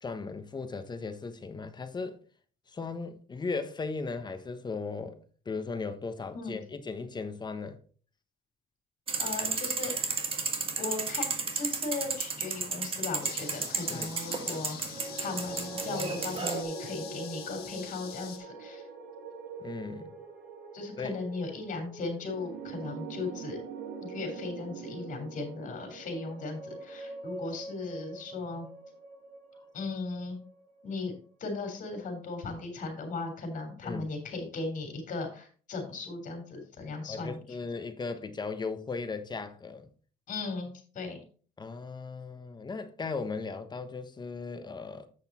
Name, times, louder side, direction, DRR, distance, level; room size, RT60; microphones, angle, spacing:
voice 1, 0.0-2.2 2.7-5.2 5.4-7.8 13.9-14.1 19.6-20.1 21.0-21.2 33.8-34.0 37.1-39.9 41.6-45.1, left 4 dB, 25° left, 1.2 m, -37 dB
sound 1, 9.1-16.6, right 4 dB, 35° right, 1.6 m, -33 dB
voice 2, 9.2-9.9 10.8-11.3 11.5-14.8 15.2-18.8 20.7-23.6 24.0-28.7 29.7-30.4 30.8-31.1 31.4-37.4 40.3-41.2, left 3 dB, 50° left, 3.9 m, -37 dB
sound 2, 13.2-18.4, left 9 dB, 65° left, 1.8 m, -45 dB
sound 3, 14.8-31.1, right 4 dB, 65° right, 2.7 m, -43 dB
8.3 x 6.5 x 4.3 m
cardioid pair, 110°, 17 cm